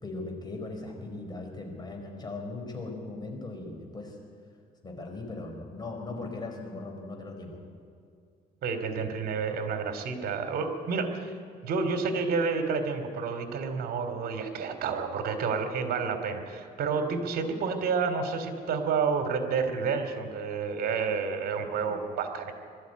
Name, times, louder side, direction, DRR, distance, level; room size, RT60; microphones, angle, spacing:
voice 1, 0.0-4.2 4.8-7.6 21.6-22.0, left 2 dB, 25° left, 2 dB, 4.7 m, -39 dB
voice 2, 8.6-11.3 11.6-22.5, right 5 dB, 65° right, 7 dB, 2.9 m, -30 dB
21.5 x 13.5 x 9.5 m, 2.3 s
cardioid pair, 110°, 17 cm